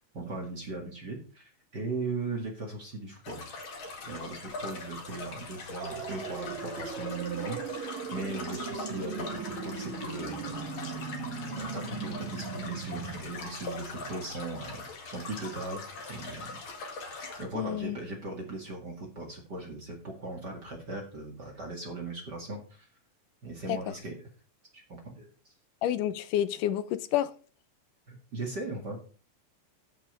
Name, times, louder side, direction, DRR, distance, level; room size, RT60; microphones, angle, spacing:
voice 1, 0.1-3.4 4.0-10.7 11.6-16.6 17.4-22.9 23.4-24.2 24.7-25.3 28.1-29.0, right 2 dB, 35° right, 2.2 m, -38 dB
sound 1, 3.2-17.4, left 3 dB, 45° left, 2.4 m, -42 dB
sound 2, 5.8-13.2, right 5 dB, 80° right, 3.0 m, -38 dB
voice 2, 17.6-18.0 23.7-23.8 25.8-27.3, left 11 dB, 80° left, 2.2 m, -29 dB
14.0 x 6.0 x 5.2 m
omnidirectional pair, 3.8 m